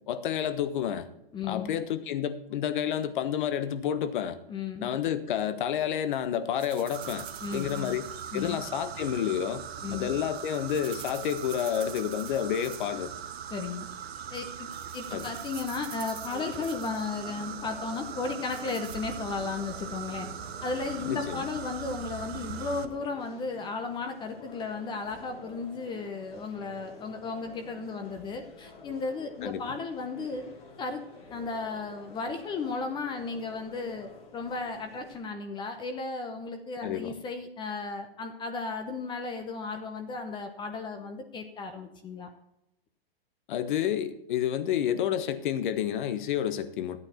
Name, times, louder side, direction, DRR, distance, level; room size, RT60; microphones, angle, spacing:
voice 1, 0.1-1.1 1.5-4.4 4.8-7.3 7.5-9.6 9.9-13.1 15.1-15.3 21.1-21.4 29.4-29.7 36.8-37.1 43.5-47.0, left 9 dB, 55° left, 12 dB, 1.1 m, -30 dB
voice 2, 1.3-1.8 4.5-5.0 7.4-8.0 8.3-8.6 9.8-10.1 13.5-13.9 14.3-14.7 14.9-20.3 20.6-30.4 30.8-31.0 31.3-42.3, left 4 dB, 15° left, 6 dB, 0.8 m, -35 dB
sound 1, 6.6-8.5 10.0-13.1 13.3-13.8 14.3-14.4 14.7-17.1 18.1-19.0, right 11 dB, 15° right, 0.6 m, -48 dB
sound 2, 6.9-22.9, right 8 dB, 85° right, 1.0 m, -40 dB
sound 3, 16.2-35.2, left 3 dB, 75° left, 4.6 m, -50 dB
13.0 x 8.8 x 4.3 m, 0.86 s
hypercardioid pair, 145°, 31 cm